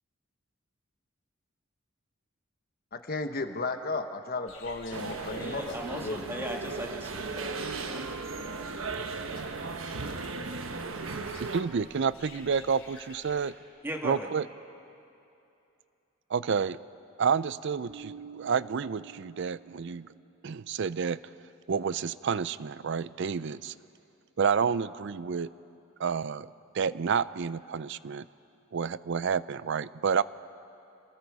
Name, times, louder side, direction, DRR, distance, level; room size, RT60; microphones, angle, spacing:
voice 1, 2.9-6.5 7.2-7.3, left 3 dB, 45° left, 7 dB, 1.0 m, -35 dB
sound 1, 4.5-13.5, left 3 dB, 70° left, 3.3 m, -53 dB
sound 2, 4.9-11.6, right 4 dB, 80° right, 1.1 m, -36 dB
voice 2, 5.4-8.0 13.8-14.3, right 1 dB, 10° right, 2 dB, 1.7 m, -38 dB
voice 3, 11.4-13.5 14.0-14.5 16.3-16.8 17.2-20.0 20.4-21.2 21.7-23.7 24.4-25.5 26.0-26.5 26.7-28.2 28.7-30.2, right 6 dB, 60° right, 17 dB, 0.4 m, -29 dB
Bass guitar, 17.9-20.3, right 6 dB, 40° right, 2.2 m, -48 dB
27.5 x 20.5 x 4.8 m, 2.7 s
head